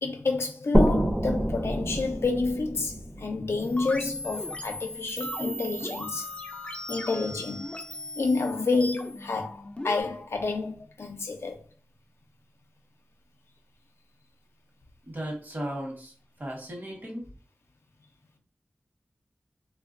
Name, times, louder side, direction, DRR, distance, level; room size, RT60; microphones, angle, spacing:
voice 1, 0.0-6.3 6.9-7.7 8.2-11.6, left 3 dB, 85° left, 0.5 m, -29 dB
sound 1, 0.7-4.3, right 1 dB, 20° right, 0.5 m, -26 dB
sound 2, 3.6-10.0, left 1 dB, 30° left, 0.4 m, -38 dB
voice 2, 15.0-16.1 16.4-17.3, equal, 45° right, 1.0 m, -36 dB
3.2 x 2.2 x 2.5 m
wide cardioid pair, 75°, 4 cm